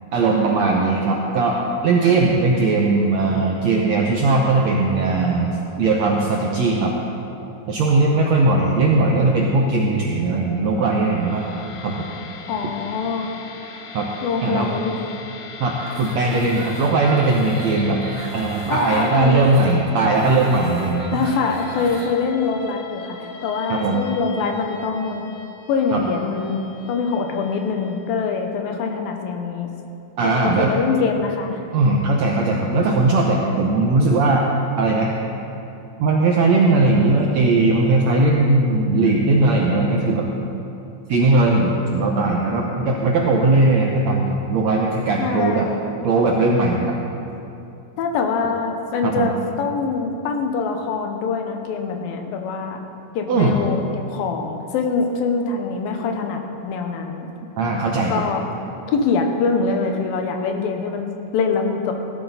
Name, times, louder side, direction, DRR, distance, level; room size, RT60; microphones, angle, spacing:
voice 1, 0.1-1.6 1.8-6.9 7.7-11.5 11.8-12.1 13.9-14.1 14.4-14.7 15.6-18.0 18.3-21.2 23.7-24.1 25.9-26.0 30.2-30.7 31.7-34.4 34.8-35.1 36.0-40.3 41.1-45.7 46.0-46.9 49.0-49.3 53.3-53.6 57.6-58.2, right 3 dB, 75° right, -1 dB, 1.6 m, -19 dB
sound 1, 10.2-28.4, left 4 dB, 65° left, 1.8 m, -40 dB
voice 2, 12.5-13.3 14.2-14.9 18.7-19.4 21.1-25.2 25.7-26.6 26.9-29.7 30.2-31.6 45.2-45.8 48.0-49.3 49.6-52.8 53.1-53.8 54.1-57.3 58.1-58.4 58.9-61.1 61.3-61.9, left 5 dB, 80° left, 4 dB, 2.7 m, -24 dB
sound 2, 15.7-22.1, right 2 dB, 45° right, 1.2 m, -37 dB
16.5 x 12.0 x 4.1 m, 2.8 s
omnidirectional pair, 4.2 m